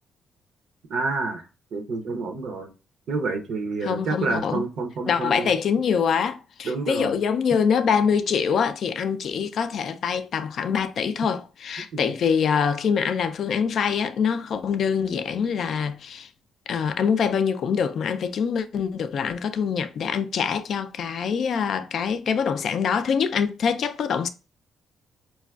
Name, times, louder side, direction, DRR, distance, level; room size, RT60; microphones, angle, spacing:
voice 1, 0.9-1.4 1.7-2.7 3.1-5.5 6.6-7.1 11.9-12.1, right 3 dB, 70° right, 0.5 m, -28 dB
voice 2, 3.8-4.7 5.1-16.3 16.7-24.3, left 6 dB, 60° left, 0.3 m, -24 dB
4.1 x 2.3 x 2.2 m
cardioid pair, 90°, 0 cm